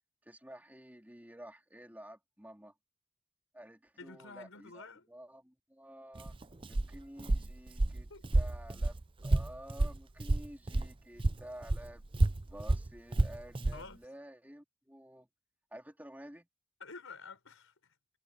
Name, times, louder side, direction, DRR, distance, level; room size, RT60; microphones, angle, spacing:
voice 1, 0.2-2.7 3.5-6.3 6.7-8.1 8.3-12.0 12.5-15.3 15.7-16.5, right 1 dB, 10° right, 3.7 m, -51 dB
voice 2, 4.0-5.1 8.1-8.3 13.7-14.0 16.8-17.9, left 4 dB, 70° left, 4.7 m, -50 dB
Walk footsteps, 6.1-10.9 11.2-13.8, right 2 dB, 25° right, 0.5 m, -30 dB
head